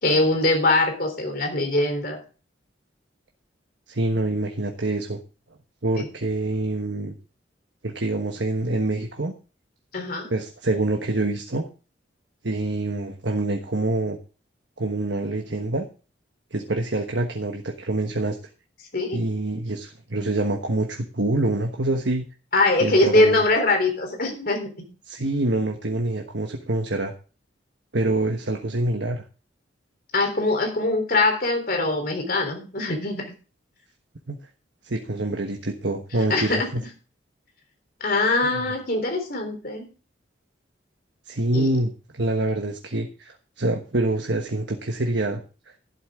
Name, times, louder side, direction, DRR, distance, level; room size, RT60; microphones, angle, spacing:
voice 1, 0.0-2.2 6.0-6.1 9.9-10.3 18.9-19.2 22.5-24.8 30.1-33.2 36.3-36.7 38.0-39.9 41.5-41.7, left 2 dB, 50° left, 4 dB, 3.8 m, -22 dB
voice 2, 3.9-5.2 5.8-7.1 7.8-9.3 10.3-11.7 12.4-14.2 14.8-15.8 16.5-18.4 19.1-22.3 22.8-23.4 25.0-27.1 27.9-29.2 34.3-34.4 34.8-36.8 38.4-38.6 41.3-45.4, right 2 dB, 70° right, 3 dB, 1.3 m, -26 dB
12.5 x 11.5 x 3.7 m, 0.35 s
head